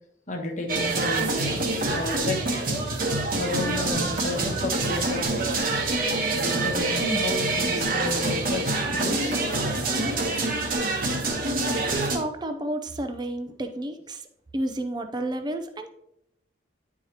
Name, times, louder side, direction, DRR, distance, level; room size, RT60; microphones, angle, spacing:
voice 1, 0.3-2.8 3.4-5.5 6.3-9.4, left 2 dB, 40° left, 3 dB, 1.2 m, -32 dB
sound 1, 0.7-12.2, right 2 dB, 45° right, 1.2 m, -26 dB
voice 2, 11.9-14.2 14.5-15.9, right 1 dB, 20° right, 7 dB, 0.6 m, -31 dB
10.5 x 4.8 x 2.9 m, 0.78 s
head